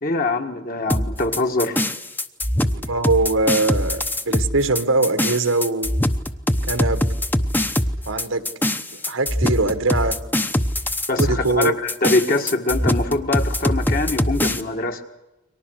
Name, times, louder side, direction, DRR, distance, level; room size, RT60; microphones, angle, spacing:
voice 1, 0.0-1.8 11.1-15.0, left 2 dB, 45° left, 5 dB, 1.7 m, -23 dB
sound 1, 0.9-14.6, left 1 dB, 10° left, 0.8 m, -23 dB
voice 2, 2.7-6.0 6.7-7.0 8.1-8.4 8.9-10.2 11.2-11.8, right 2 dB, 85° right, 9 dB, 1.7 m, -22 dB
30.0 x 24.0 x 6.5 m, 1.0 s
head